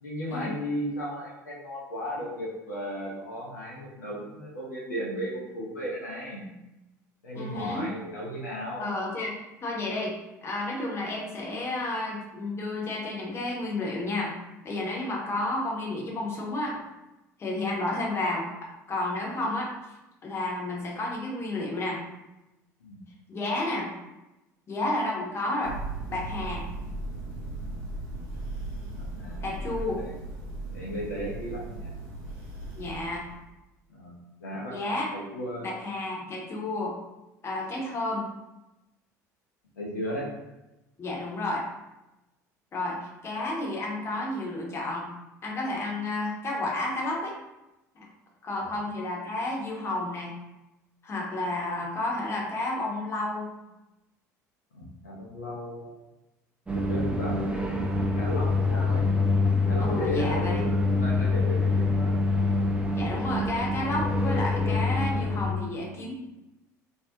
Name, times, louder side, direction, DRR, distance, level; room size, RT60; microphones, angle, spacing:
voice 1, 0.0-6.5 7.2-8.9 22.8-23.0 28.9-30.1 30.7-32.0 33.9-35.7 39.8-40.3 48.6-48.7 54.7-56.0 56.7-59.0 59.7-62.2, equal, 75° left, -4 dB, 0.5 m, -35 dB
voice 2, 7.3-7.9 8.8-10.1 10.4-14.3 14.6-16.8 17.4-18.4 18.9-19.7 20.2-22.0 23.3-23.9 24.7-25.8 26.1-26.8 29.4-30.0 32.8-33.2 34.7-35.1 35.6-37.0 37.4-38.3 41.0-41.7 42.7-45.1 45.4-47.3 48.0-48.1 48.4-50.4 51.0-53.5 59.8-60.6 62.9-66.1, left 2 dB, 30° left, -3 dB, 0.7 m, -31 dB
Thunder, 25.6-33.5, right 2 dB, 60° right, 0.6 m, -37 dB
sound 1, 56.7-65.5, left 3 dB, 10° right, 0.4 m, -25 dB
2.4 x 2.0 x 2.6 m, 0.98 s
figure-of-eight pair, 65°, 9 cm